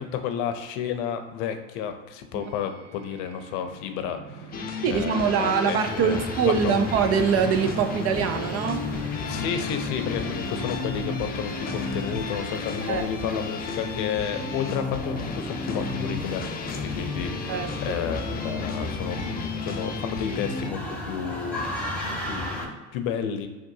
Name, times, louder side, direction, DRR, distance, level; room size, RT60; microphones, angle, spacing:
voice 1, 0.0-6.9 9.3-23.5, left 8 dB, 60° left, 7 dB, 0.7 m, -32 dB
sound 1, 2.4-13.5, left 2 dB, 90° right, 0.5 m, -43 dB
sound 2, 4.5-20.7, left 5 dB, 25° left, 0.5 m, -33 dB
voice 2, 4.8-8.9 12.9-13.4 17.5-18.0, right 7 dB, 40° right, 8 dB, 0.5 m, -24 dB
sound 3, 5.8-22.7, left 1 dB, 5° left, 1.2 m, -35 dB
6.6 x 2.4 x 2.7 m, 1.2 s
hypercardioid pair, 80°, 36 cm